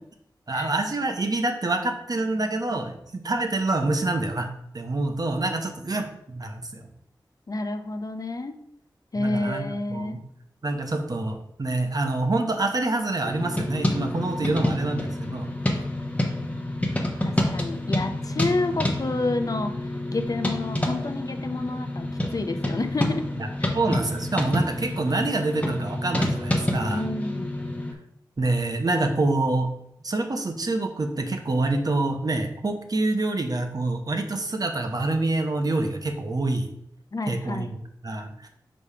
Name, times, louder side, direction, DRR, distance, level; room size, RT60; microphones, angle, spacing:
voice 1, 0.5-4.5 4.7-6.9 9.1-10.2 10.6-15.5 18.3-18.4 23.4-23.5 23.7-27.0 28.4-29.7 30.0-36.7 37.3-38.5, right 2 dB, 50° right, 5 dB, 0.9 m, -26 dB
voice 2, 7.5-8.6 9.1-10.2 17.2-19.7 20.1-22.1 22.3-23.2 23.6-23.7 26.9-27.5 37.1-37.7, left 2 dB, 45° left, 8 dB, 0.6 m, -29 dB
sound 1, 13.2-27.9, left 1 dB, 15° left, 1.0 m, -28 dB
5.2 x 3.4 x 5.5 m, 0.75 s
wide cardioid pair, 55°, 8 cm